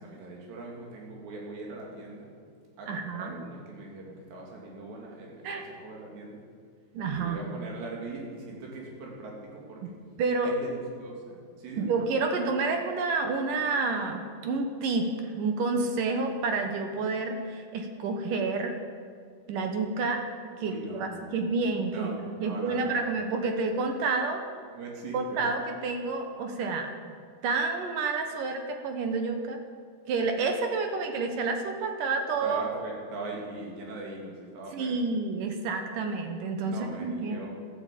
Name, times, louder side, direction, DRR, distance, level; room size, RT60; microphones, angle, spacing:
voice 1, 0.0-2.3 2.8-6.4 7.1-9.9 10.4-11.9 20.6-21.3 21.9-23.1 24.7-25.5 32.4-35.0 36.6-37.5, right 2 dB, 85° right, -2 dB, 4.9 m, -41 dB
voice 2, 2.9-3.4 5.4-5.7 6.9-7.4 9.8-9.9 10.2-10.5 11.8-18.7 19.5-20.2 20.6-24.4 25.1-26.9 27.4-29.6 30.1-32.8 34.7-37.4, right 4 dB, 65° right, 5 dB, 2.3 m, -29 dB
13.0 x 12.0 x 8.4 m, 2.1 s
omnidirectional pair, 4.8 m